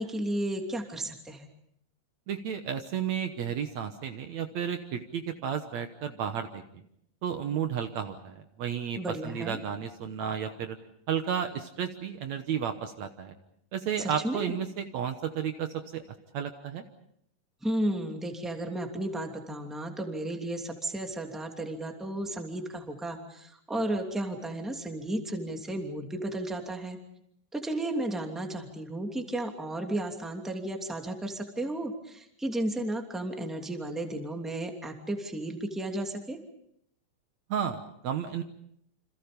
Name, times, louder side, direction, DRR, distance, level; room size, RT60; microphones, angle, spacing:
voice 1, 0.0-1.5 9.0-9.6 14.0-14.5 17.6-27.0 27.5-36.4, right 1 dB, ahead, 3 dB, 2.3 m, -33 dB
voice 2, 2.3-6.8 7.2-10.8 11.1-13.3 13.7-16.0 16.3-16.8 37.5-38.4, right 8 dB, 65° right, 7 dB, 2.2 m, -32 dB
29.0 x 27.0 x 5.3 m, 0.71 s
omnidirectional pair, 3.8 m